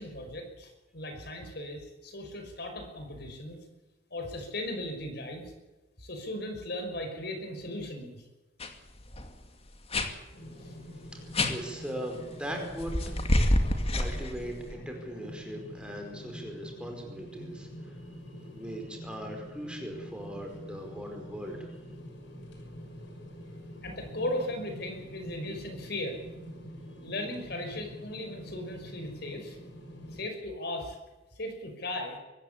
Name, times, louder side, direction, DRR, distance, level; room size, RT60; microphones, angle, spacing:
voice 1, 0.0-3.6 4.1-5.5 6.0-8.2 10.6-10.7 23.8-26.2 27.0-29.6 30.1-31.0 31.3-32.2, left 1 dB, 60° left, 5 dB, 5.5 m, -37 dB
sound 1, 8.6-8.7 9.0-9.3 9.9-10.1 11.3-11.5 12.8-14.7, left 1 dB, 35° left, 2.3 m, -27 dB
sound 2, 10.3-30.2, equal, 75° left, 6.2 m, -46 dB
voice 2, 11.5-13.2 14.0-18.0 18.5-21.7, equal, 5° right, 2 dB, 4.8 m, -39 dB
24.0 x 14.5 x 8.6 m, 1.1 s
head